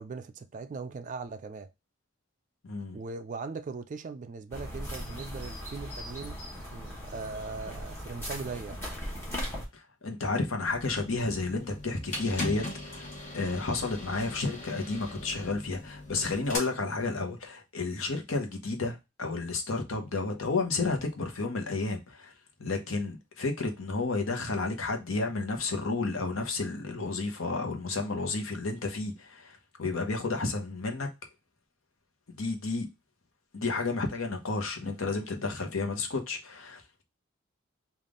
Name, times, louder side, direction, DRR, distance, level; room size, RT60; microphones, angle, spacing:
voice 1, 0.0-1.7 2.9-6.4 6.7-8.8, right 4 dB, 40° right, 0.3 m, -39 dB
voice 2, 2.6-3.0 9.7-13.1 13.3-22.3 22.6-31.1 32.4-32.9 33.5-37.0, left 3 dB, 75° left, 0.9 m, -31 dB
sound 1, 4.5-9.6, equal, 15° left, 1.1 m, -38 dB
sound 2, 10.6-16.6, left 1 dB, 35° left, 1.2 m, -39 dB
3.5 x 2.4 x 3.6 m
head